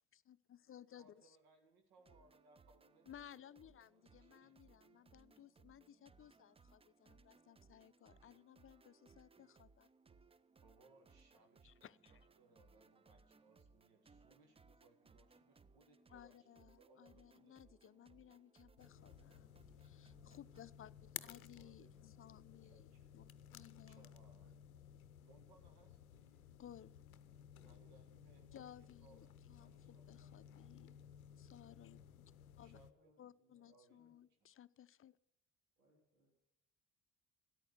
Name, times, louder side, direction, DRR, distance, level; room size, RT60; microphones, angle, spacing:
voice 1, 0.1-1.1 3.1-9.9 11.6-12.1 16.1-19.5 19.8-24.1 26.6-26.9 28.5-29.7 30.1-31.0 31.4-32.2 32.6-32.8 33.2-35.2, left 10 dB, 30° left, 17 dB, 0.6 m, -59 dB
voice 2, 1.0-4.6 10.6-18.2 21.2-22.0 22.6-23.1 23.9-24.8 25.2-26.5 27.7-30.5 32.6-33.1 33.7-34.0, right 2 dB, 60° right, 5 dB, 2.1 m, -70 dB
sound 1, 2.0-20.6, right 4 dB, 15° right, 0.5 m, -68 dB
sound 2, 18.8-32.9, left 9 dB, 85° left, 0.6 m, -57 dB
voice 3, 25.5-27.2 27.5-28.8 32.8-34.3 35.8-36.4, left 1 dB, 85° right, -3 dB, 2.8 m, -77 dB
13.5 x 10.5 x 6.8 m, 0.88 s
figure-of-eight pair, 50°, 41 cm